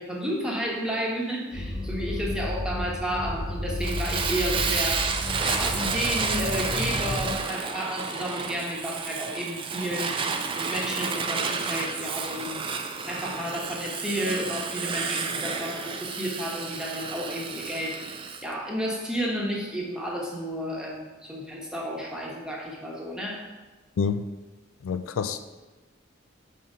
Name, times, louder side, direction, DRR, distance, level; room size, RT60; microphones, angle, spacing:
voice 1, 0.0-5.0 5.4-10.1 10.5-12.6 13.1-18.2 18.4-23.5, equal, 5° right, -3 dB, 1.0 m, -31 dB
sound 1, 1.5-7.3, left 1 dB, 25° left, 0.6 m, -32 dB
Fire, 3.8-18.4, right 5 dB, 25° right, 0.4 m, -31 dB
voice 2, 24.8-25.6, left 6 dB, 90° left, 11 dB, 0.4 m, -28 dB
5.7 x 3.7 x 5.4 m, 1.2 s
head